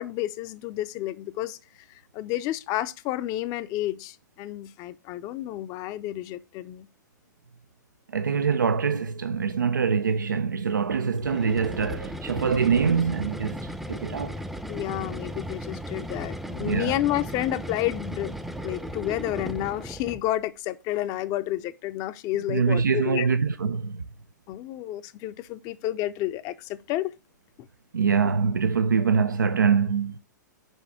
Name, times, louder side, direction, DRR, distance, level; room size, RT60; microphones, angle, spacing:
voice 1, 0.0-1.6 1.9-6.9 14.7-18.3 18.6-23.3 24.5-27.1 29.0-29.1, left 14 dB, 35° left, 0.6 m, -30 dB
voice 2, 8.1-13.6 13.9-14.3 16.6-16.9 22.5-24.0 27.9-30.2, right 6 dB, 85° right, 0.5 m, -24 dB
sound 1, 11.2-20.3, equal, ahead, 0.6 m, -36 dB
6.4 x 4.8 x 5.9 m
hypercardioid pair, 110°, 10 cm